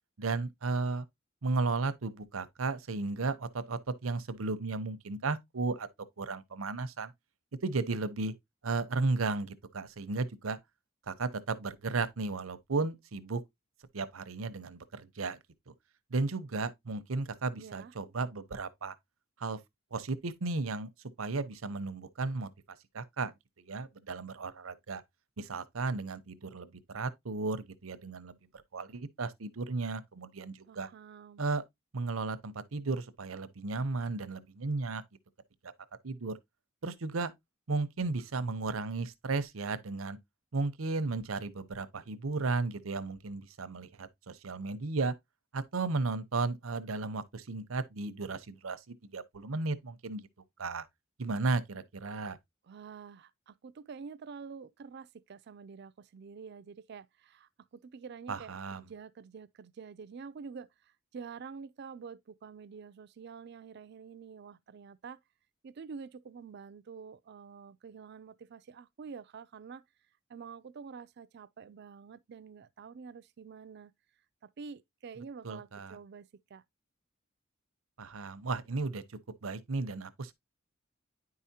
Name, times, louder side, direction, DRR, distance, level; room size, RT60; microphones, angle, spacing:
voice 1, 0.2-1.0 1.4-5.9 6.2-7.1 7.6-8.3 8.6-10.6 11.1-13.4 13.9-15.4 16.1-19.0 19.4-19.6 19.9-20.9 21.2-22.5 22.9-23.3 23.7-25.0 25.4-28.4 28.7-30.9 31.4-31.6 31.9-35.0 35.6-35.7 36.0-36.4 36.8-37.3 37.7-40.2 40.5-45.1 45.5-50.2 50.6-50.9 51.2-52.4 58.3-58.8 75.4-76.0 78.0-79.0 79.4-80.3, right 3 dB, 85° right, 0.8 m, -34 dB
voice 2, 17.6-17.9 30.6-31.4 52.6-65.2 65.6-69.8 70.3-73.9 74.4-76.6, right 5 dB, 55° right, 0.4 m, -48 dB
9.7 x 4.8 x 2.8 m
head